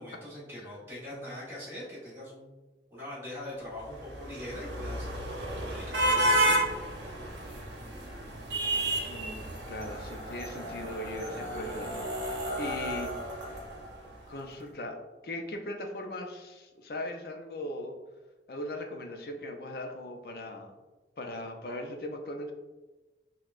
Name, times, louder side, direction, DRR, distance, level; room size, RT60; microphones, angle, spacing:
voice 1, 0.0-2.5 2.9-6.6, left 1 dB, 15° right, -8 dB, 1.2 m, -42 dB
sound 1, 3.8-14.1, right 1 dB, 85° right, 0.8 m, -32 dB
voice 2, 9.0-13.1 14.3-17.9 18.5-20.7 21.2-22.5, left 1 dB, 55° left, 3 dB, 0.5 m, -39 dB
6.0 x 2.3 x 2.4 m, 1.2 s
head